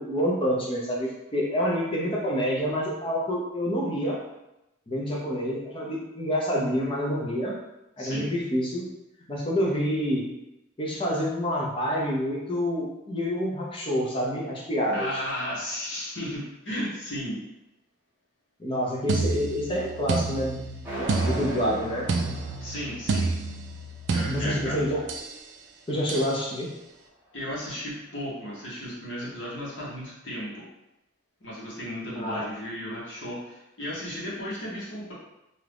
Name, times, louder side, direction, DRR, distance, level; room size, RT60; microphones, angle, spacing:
voice 1, 0.0-4.2 4.9-7.6 8.0-8.9 9.3-10.3 10.8-15.2 18.6-20.6 21.0-22.1 24.3-25.0 25.9-26.7 32.2-32.4, equal, 25° left, -3 dB, 0.6 m, -27 dB
voice 2, 8.0-8.3 14.9-17.4 22.6-23.3 24.1-24.8 27.3-30.7 31.4-35.1, equal, 60° left, -7 dB, 1.1 m, -34 dB
sound 1, 19.1-25.4 26.1-26.4, right 3 dB, 55° right, 0.3 m, -30 dB
sound 2, 20.8-23.8, right 1 dB, 10° right, 0.7 m, -37 dB
2.7 x 2.4 x 3.4 m, 0.93 s
head